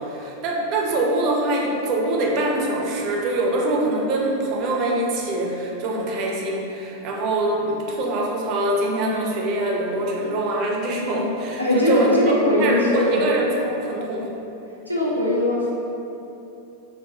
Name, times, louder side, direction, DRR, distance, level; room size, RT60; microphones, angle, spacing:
voice 1, 0.0-12.1 12.6-14.3, right 2 dB, 40° right, -1 dB, 0.5 m, -24 dB
voice 2, 11.6-13.2 14.9-15.7, left 1 dB, 90° left, -6 dB, 0.6 m, -20 dB
3.6 x 2.5 x 2.7 m, 2.9 s
figure-of-eight pair, 90°, 0 cm